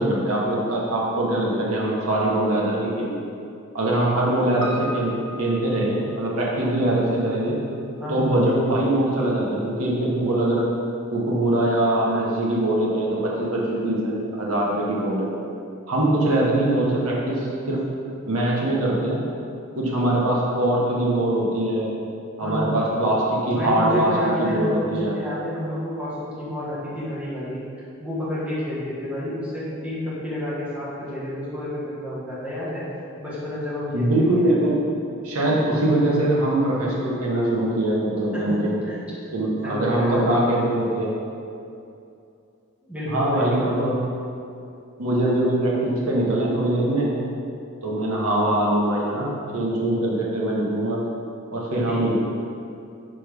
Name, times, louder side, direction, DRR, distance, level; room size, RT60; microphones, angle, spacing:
voice 1, 0.0-3.3 3.7-7.6 8.1-10.6 11.1-15.3 15.9-17.8 18.3-19.2 19.8-21.9 22.4-24.1 24.4-25.1 33.9-34.9 35.2-38.7 39.3-41.1 43.1-44.0 45.0-47.1 47.8-51.0 51.5-52.1, right 1 dB, 85° right, -5 dB, 1.6 m, -22 dB
Piano, 4.6-9.1 9.4-9.5, equal, 65° right, 0.8 m, -38 dB
voice 2, 8.0-8.3 22.4-22.8 23.5-32.9 33.2-34.6 38.3-40.4 42.8-44.0 51.9-52.1, equal, 5° right, -9 dB, 1.8 m, -30 dB
6.0 x 6.0 x 5.3 m, 2.6 s
head